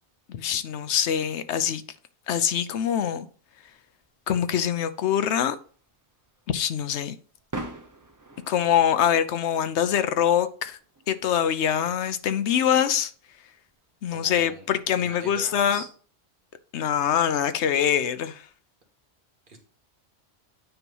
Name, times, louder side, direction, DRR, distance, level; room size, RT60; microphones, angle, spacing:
voice 1, 0.3-1.8 2.3-3.3 4.3-5.6 6.5-7.1 8.5-10.8 11.1-13.1 14.0-15.8 16.7-18.4, left 9 dB, 85° left, 1.0 m, -24 dB
sound 1, 3.6-14.9, right 2 dB, 20° right, 0.6 m, -46 dB
voice 2, 14.1-14.7 15.0-15.9 19.5-19.6, right 1 dB, 50° right, 1.6 m, -42 dB
9.1 x 3.0 x 5.3 m
omnidirectional pair, 1.1 m